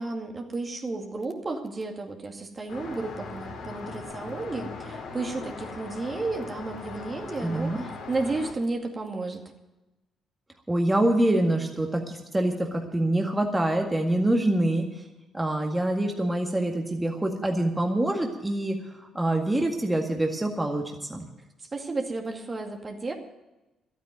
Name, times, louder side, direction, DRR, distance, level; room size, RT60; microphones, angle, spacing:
voice 1, 0.0-9.4 21.7-23.1, right 3 dB, 35° right, 3 dB, 2.2 m, -32 dB
Traffic noise roadway noise, 2.7-8.5, left 4 dB, 65° left, 3.1 m, -40 dB
voice 2, 7.4-7.8 10.7-14.9 15.3-21.3, right 1 dB, 15° right, 2 dB, 1.9 m, -25 dB
12.5 x 9.1 x 9.2 m, 1.0 s
hypercardioid pair, 50°, 0 cm